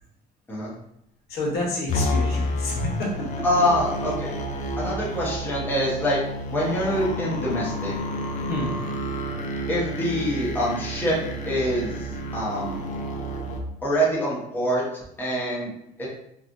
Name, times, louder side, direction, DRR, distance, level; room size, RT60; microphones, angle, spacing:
voice 1, 1.3-3.1 8.5-8.8, left 2 dB, 70° left, -3 dB, 1.2 m, -28 dB
sound 1, 1.9-13.6, equal, 45° left, 0.5 m, -30 dB
voice 2, 3.4-4.3 4.8-6.2 6.5-7.9 9.7-11.1 11.5-12.0 12.3-12.8 13.8-15.7 16.0-16.1, equal, 10° left, -6 dB, 1.0 m, -25 dB
3.0 x 2.4 x 2.6 m, 0.77 s
cardioid pair, 110°, 17 cm